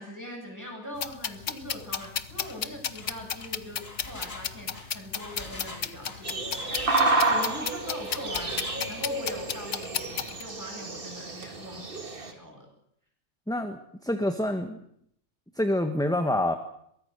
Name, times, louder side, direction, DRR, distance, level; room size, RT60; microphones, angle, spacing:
voice 1, 0.0-12.7, equal, 15° right, 1 dB, 8.0 m, -42 dB
sound 1, 1.0-10.4, left 7 dB, 65° left, 1.4 m, -34 dB
Engine, 1.9-2.1 2.4-2.6 2.9-7.7 8.0-8.8, left 2 dB, 45° left, 5.0 m, -44 dB
sound 2, 6.2-12.3, right 2 dB, 40° right, 2.2 m, -30 dB
voice 2, 13.5-14.8 15.6-16.5, left 1 dB, 5° left, 6 dB, 1.3 m, -27 dB
23.0 x 20.0 x 6.8 m, 0.72 s
omnidirectional pair, 1.4 m